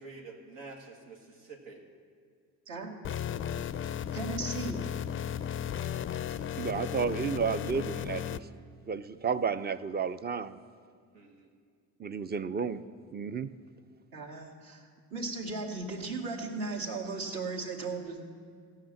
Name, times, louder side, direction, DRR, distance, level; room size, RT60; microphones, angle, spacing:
voice 1, 0.0-1.8 3.0-3.2 3.8-3.9 6.9-7.2 11.1-11.5, right 3 dB, 90° right, 0 dB, 1.9 m, -48 dB
sound 1, 3.0-8.4, left 9 dB, 35° left, 0.4 m, -35 dB
voice 2, 4.1-4.8 14.1-14.8 15.1-18.2, right 3 dB, 60° right, -1 dB, 2.2 m, -36 dB
voice 3, 6.6-8.4 8.9-10.6 12.0-12.8 13.1-13.5, right 6 dB, 25° right, 14 dB, 0.5 m, -32 dB
16.0 x 5.8 x 7.5 m, 2.1 s
supercardioid pair, 80°, 38 cm